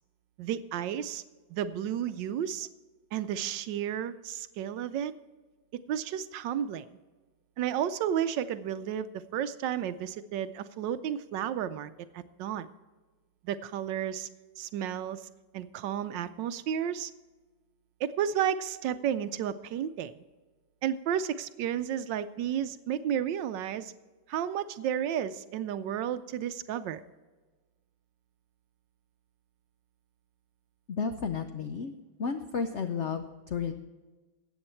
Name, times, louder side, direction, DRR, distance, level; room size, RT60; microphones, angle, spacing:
voice 1, 0.4-1.2 1.5-2.7 3.1-5.1 5.7-6.9 7.6-12.7 13.4-14.3 14.6-15.3 15.5-17.1 18.0-20.1 20.8-23.9 24.3-27.0, right 9 dB, 75° right, 12 dB, 1.2 m, -32 dB
voice 2, 30.9-31.9 32.2-33.7, left 5 dB, 75° left, 6 dB, 0.6 m, -32 dB
14.5 x 8.7 x 4.4 m, 1.3 s
omnidirectional pair, 2.1 m